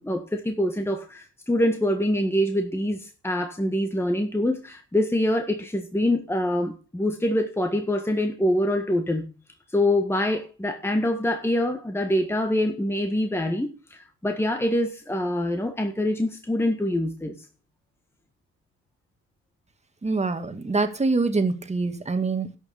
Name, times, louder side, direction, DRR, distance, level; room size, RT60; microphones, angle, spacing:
voice 1, 0.0-9.3 9.7-17.3, left 1 dB, 10° left, 1.6 m, -25 dB
voice 2, 20.0-22.6, right 3 dB, 20° right, 2.0 m, -25 dB
12.0 x 6.5 x 6.7 m
cardioid pair, 90°, 30 cm